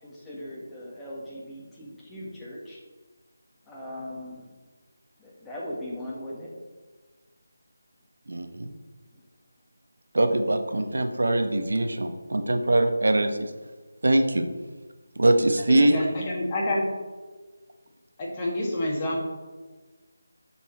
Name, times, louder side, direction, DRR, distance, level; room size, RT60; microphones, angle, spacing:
voice 1, 0.0-2.8 3.6-4.5 5.2-6.5 9.1-9.2, left 1 dB, 5° left, -7 dB, 1.7 m, -39 dB
voice 2, 8.3-8.7 10.1-13.5 14.0-14.5 15.2-16.0, right 1 dB, 70° right, 6 dB, 1.1 m, -22 dB
voice 3, 15.7-16.9 18.2-19.2, left 1 dB, 20° left, -4 dB, 2.0 m, -27 dB
11.5 x 4.5 x 4.3 m, 1.3 s
figure-of-eight pair, 165°, 0 cm